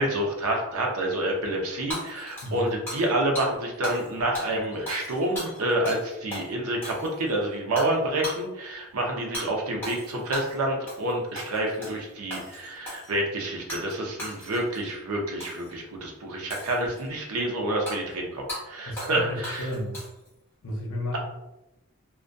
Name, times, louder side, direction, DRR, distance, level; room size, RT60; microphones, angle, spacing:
voice 1, 0.0-19.7, right 1 dB, 80° right, 0 dB, 0.6 m, -28 dB
Hammer / Shatter, 1.9-3.1 3.4-3.5 3.8-4.1 4.3-6.0 6.3-6.5 6.8-7.3 7.8-7.9 8.2-8.4 9.3-9.5 9.8-10.6 10.9-11.1 11.4-12.0 12.3-13.1 13.7-13.9 14.2-14.8 15.4-15.7 16.5-17.1 17.9-18.0 18.5-18.6 19.0-19.2 19.4-20.3, left 1 dB, 10° left, 0.9 m, -36 dB
voice 2, 18.9-20.1 20.6-21.2, left 1 dB, 70° left, 1 dB, 0.6 m, -33 dB
2.2 x 2.2 x 2.5 m, 0.95 s
head